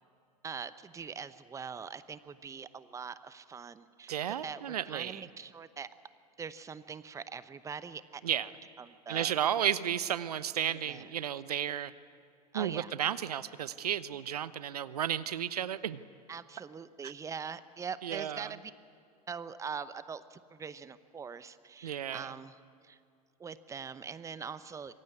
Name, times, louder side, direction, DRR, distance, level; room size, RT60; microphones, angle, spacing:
voice 1, 0.4-5.9 6.4-8.2 8.8-9.3 10.7-11.1 12.5-12.9 16.3-18.7 19.3-23.0 23.4-24.9, right 6 dB, 15° right, 15 dB, 0.9 m, -43 dB
voice 2, 4.1-5.2 8.2-8.5 9.1-11.9 12.5-16.0 18.0-18.5 21.8-22.3, right 10 dB, 70° right, 16 dB, 0.9 m, -33 dB
26.0 x 22.5 x 9.7 m, 2.3 s
figure-of-eight pair, 90°, 20 cm